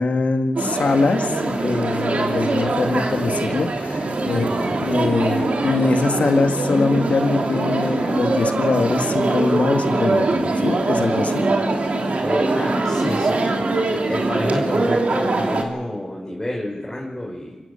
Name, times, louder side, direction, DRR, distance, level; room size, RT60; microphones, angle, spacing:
voice 1, 0.0-4.5 4.8-11.4, left 3 dB, 80° left, 6 dB, 1.8 m, -22 dB
sound 1, 0.6-15.6, right 2 dB, 70° right, 2.9 m, -22 dB
voice 2, 4.3-4.8 12.2-13.7 14.1-17.6, left 1 dB, 20° left, -3 dB, 5.6 m, -29 dB
26.0 x 15.5 x 7.0 m, 1.1 s
cardioid pair, 45°, 2 cm